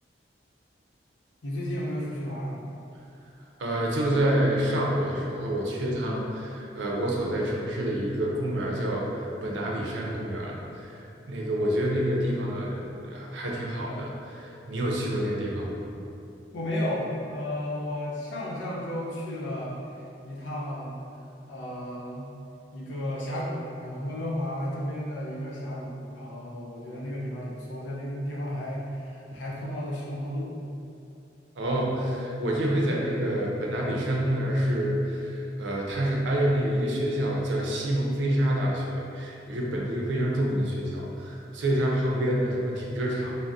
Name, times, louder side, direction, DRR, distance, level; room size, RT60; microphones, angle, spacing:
voice 1, 1.4-2.6 16.5-21.0 21.5-22.3 22.7-30.5, left 1 dB, 85° left, -6 dB, 0.6 m, -33 dB
voice 2, 3.6-11.0 11.3-15.8 31.6-43.3, right 1 dB, 80° right, -2 dB, 0.5 m, -27 dB
3.4 x 2.0 x 2.6 m, 2.6 s
head